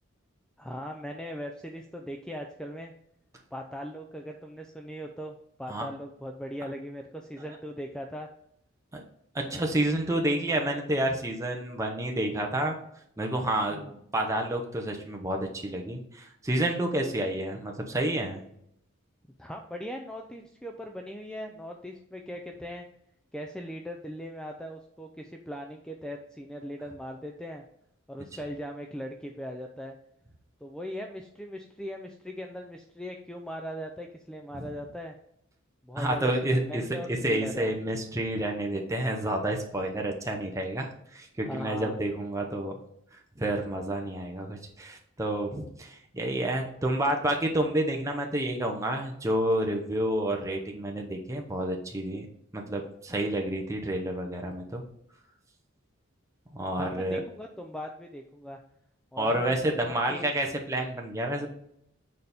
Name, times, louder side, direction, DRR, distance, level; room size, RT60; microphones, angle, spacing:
voice 1, 0.6-2.9 3.5-8.3 9.5-9.6 13.7-14.0 19.4-22.8 23.3-27.6 28.1-30.0 30.6-35.2 35.8-36.3 36.7-37.8 41.4-42.0 56.8-58.6 59.1-60.3, equal, 5° left, 2 dB, 0.4 m, -39 dB
voice 2, 9.3-12.8 13.2-18.4 34.6-34.7 35.9-36.8 37.1-42.8 43.4-52.3 52.5-54.8 56.5-57.2 59.2-61.5, right 1 dB, 15° right, 2 dB, 0.8 m, -29 dB
6.6 x 4.1 x 3.4 m, 0.72 s
head